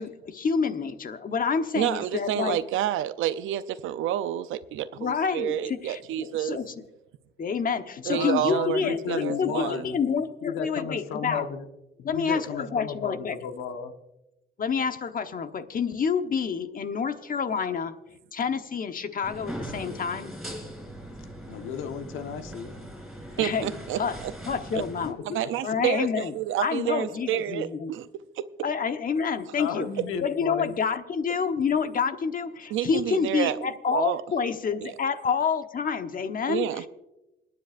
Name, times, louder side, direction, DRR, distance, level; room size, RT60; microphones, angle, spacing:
voice 1, 0.0-2.6 5.0-6.7 7.4-11.5 12.0-13.4 14.6-18.0 18.3-20.3 23.4-24.2 24.5-25.2 25.6-27.9 28.6-29.9 30.2-36.9, left 6 dB, 45° left, 1.1 m, -28 dB
voice 2, 1.7-6.6 8.1-9.8 23.4-24.3 25.2-28.1 28.4-28.5 32.7-34.2 34.8-34.9 36.5-36.8, right 11 dB, 85° right, 0.6 m, -29 dB
voice 3, 8.1-10.0 10.4-11.6 12.0-13.9 21.5-22.9 24.7-25.4 29.5-30.7, left 6 dB, 90° left, 1.2 m, -33 dB
sound 1, 19.2-25.1, right 1 dB, ahead, 4.1 m, -40 dB
27.5 x 9.8 x 2.5 m
cardioid pair, 90°, 20 cm